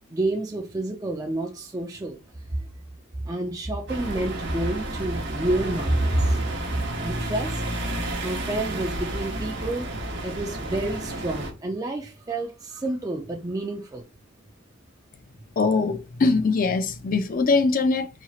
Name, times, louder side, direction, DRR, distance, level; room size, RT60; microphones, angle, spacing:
voice 1, 0.1-2.2 2.6-2.7 3.2-6.4 6.7-7.9 8.2-9.9 10.2-14.0, right 1 dB, 20° right, 0.4 m, -28 dB
sound 1, 3.9-11.5, right 1 dB, 60° right, 0.9 m, -31 dB
voice 2, 15.6-18.1, left 3 dB, 45° left, 0.4 m, -22 dB
4.3 x 2.9 x 2.4 m
head